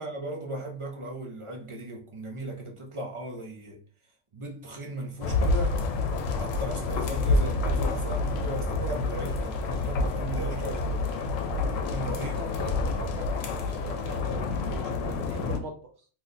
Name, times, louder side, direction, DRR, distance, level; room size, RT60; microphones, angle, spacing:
voice 1, 0.0-3.8 4.3-5.8 6.2-11.0 11.7-12.5, right 1 dB, 50° right, 0.3 m, -37 dB
sound 1, 5.2-15.6, left 3 dB, 90° left, 1.0 m, -28 dB
voice 2, 12.2-15.8, right 3 dB, 65° right, 0.7 m, -41 dB
2.8 x 2.1 x 3.7 m
omnidirectional pair, 1.3 m